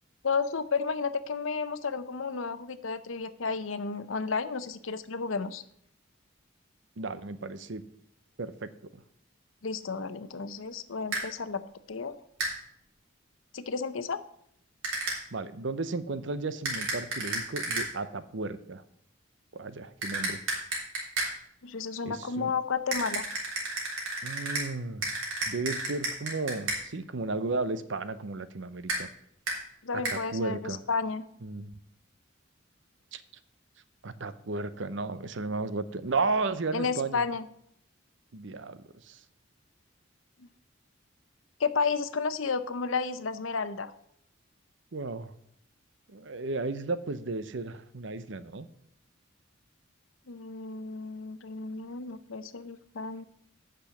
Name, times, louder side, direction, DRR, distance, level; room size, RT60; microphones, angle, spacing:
voice 1, 0.2-5.6 9.6-12.2 13.5-14.2 21.6-23.3 29.8-31.2 36.7-37.5 40.4-40.5 41.6-43.9 50.3-53.2, left 5 dB, 80° left, 13 dB, 0.7 m, -32 dB
voice 2, 7.0-7.8 8.4-9.0 15.3-18.8 19.5-20.4 22.1-22.5 24.2-25.1 25.5-29.1 29.9-30.8 31.4-31.7 33.1-33.2 34.0-37.2 38.3-39.2 44.9-45.3 46.1-48.7, right 3 dB, 65° right, 13 dB, 0.7 m, -34 dB
sound 1, 11.1-11.2 12.4-12.5 14.8-15.2 16.6-17.9 20.0-21.3 22.9-24.7 25.0-26.8 28.9-29.0 29.5-29.6 30.0-30.2, right 2 dB, 85° right, 3.4 m, -31 dB
8.8 x 6.2 x 7.0 m, 0.71 s
head